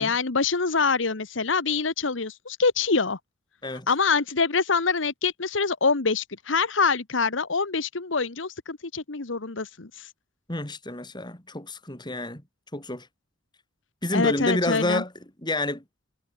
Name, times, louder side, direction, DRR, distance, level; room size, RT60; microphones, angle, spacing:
voice 1, 0.0-3.2 3.9-10.1 14.1-15.0, left 4 dB, 80° left, 1.3 m, -25 dB
voice 2, 10.5-12.4 12.7-13.1 14.0-15.1 15.4-15.8, left 1 dB, 25° left, 4.6 m, -28 dB
head